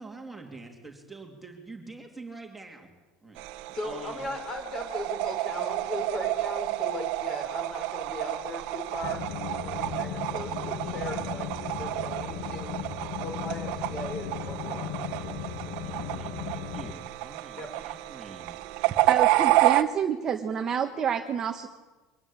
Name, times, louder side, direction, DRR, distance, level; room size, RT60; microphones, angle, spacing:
voice 1, 0.0-2.9 3.2-4.3 15.8-18.6, right 3 dB, 5° right, 1 dB, 3.1 m, -46 dB
sound 1, 3.4-19.8, right 17 dB, 60° right, 1.2 m, -30 dB
voice 2, 3.7-9.2 9.5-12.7 13.2-15.4 17.6-17.7, left 1 dB, 25° left, 6 dB, 5.1 m, -38 dB
sound 2, 9.0-16.9, left 8 dB, 60° left, 2.2 m, -37 dB
voice 3, 19.1-21.7, right 8 dB, 25° right, 5 dB, 1.3 m, -28 dB
24.0 x 19.0 x 9.0 m, 1.2 s
cardioid pair, 165°, 2 cm